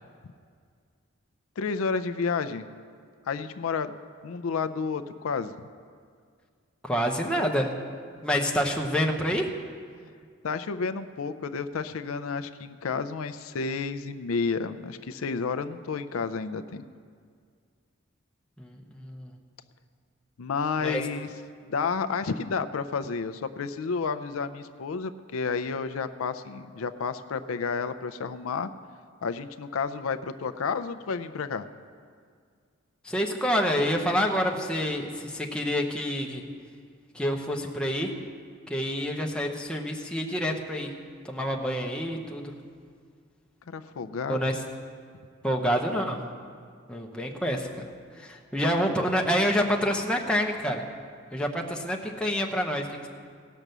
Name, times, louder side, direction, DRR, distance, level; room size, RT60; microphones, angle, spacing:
voice 1, 1.6-2.6 3.3-3.9 4.2-5.7 10.4-16.8 20.4-21.3 21.7-28.7 29.2-31.7 43.7-44.4, left 5 dB, 85° left, 10 dB, 0.5 m, -31 dB
voice 2, 6.8-7.7 8.2-9.5 18.6-19.3 20.8-21.0 33.0-36.4 37.1-38.1 38.7-40.9 41.2-42.5 44.3-44.6 45.4-46.2 46.9-47.9 48.1-50.8 51.3-53.1, equal, 5° left, 0 dB, 0.9 m, -27 dB
17.5 x 6.1 x 6.7 m, 2.1 s
head